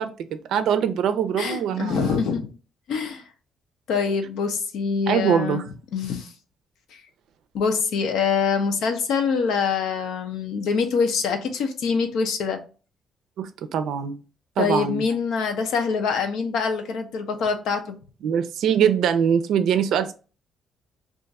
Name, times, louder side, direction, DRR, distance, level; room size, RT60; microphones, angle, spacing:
voice 1, 0.0-2.2 5.1-5.6 13.4-14.2 14.6-15.0 18.2-20.1, right 8 dB, 80° right, 9 dB, 0.4 m, -23 dB
voice 2, 1.4-2.5 2.9-3.2 3.9-5.6 5.9-6.3 7.5-12.6 14.6-18.0, left 5 dB, 85° left, 6 dB, 0.6 m, -24 dB
2.5 x 2.4 x 4.0 m, 0.35 s
cardioid pair, 90°, 0 cm